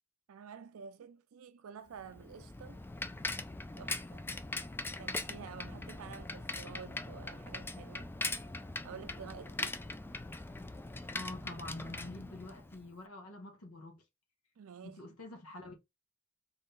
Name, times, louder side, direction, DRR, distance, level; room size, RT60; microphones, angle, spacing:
voice 1, 0.3-2.8 3.8-4.3 5.0-8.1 8.8-9.8 14.6-15.0, right 6 dB, 70° right, 0.4 m, -50 dB
Bicycle, 2.0-12.9, left 2 dB, 10° left, 0.3 m, -41 dB
voice 2, 11.1-14.0 14.8-15.7, left 2 dB, 80° left, 1.1 m, -46 dB
3.7 x 3.1 x 3.9 m
head